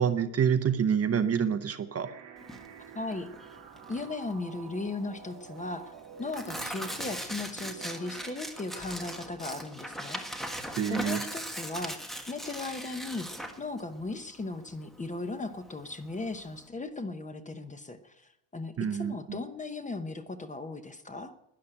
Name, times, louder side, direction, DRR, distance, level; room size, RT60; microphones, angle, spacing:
voice 1, 0.0-2.1 10.8-11.2 18.8-19.4, right 7 dB, 30° right, 10 dB, 0.8 m, -27 dB
sound 1, 2.0-8.4, right 7 dB, 65° right, 2.4 m, -49 dB
Tearing, 2.4-16.7, equal, ahead, 1.3 m, -40 dB
voice 2, 2.9-3.3 3.9-5.9 6.2-10.2 10.9-12.0 12.3-13.3 13.6-21.3, left 3 dB, 15° left, 9 dB, 0.9 m, -37 dB
12.5 x 10.5 x 9.9 m, 0.86 s
cardioid pair, 165°, 46 cm